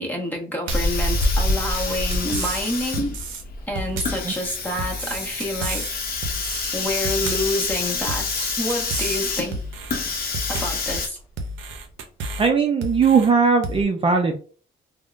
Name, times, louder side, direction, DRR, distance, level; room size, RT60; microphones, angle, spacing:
voice 1, 0.0-3.2 3.7-6.0 6.7-9.6 10.5-11.2, equal, 10° left, 0.9 m, -28 dB
Hiss, 0.7-11.1, left 3 dB, 50° left, 0.7 m, -27 dB
sound 1, 0.7-1.0 1.5-2.6 2.9-3.4 3.8-4.3 4.8-5.9 6.2-6.7 7.0-7.6 8.1-9.2 9.5-10.0 10.3-10.9 11.4-12.5 12.8-13.3 13.6-13.8, right 2 dB, 75° right, 0.6 m, -31 dB
Run, 1.0-12.4, equal, 85° left, 0.7 m, -42 dB
voice 2, 12.4-14.4, right 5 dB, 30° right, 0.4 m, -19 dB
3.5 x 2.1 x 2.4 m
cardioid pair, 90°, 20 cm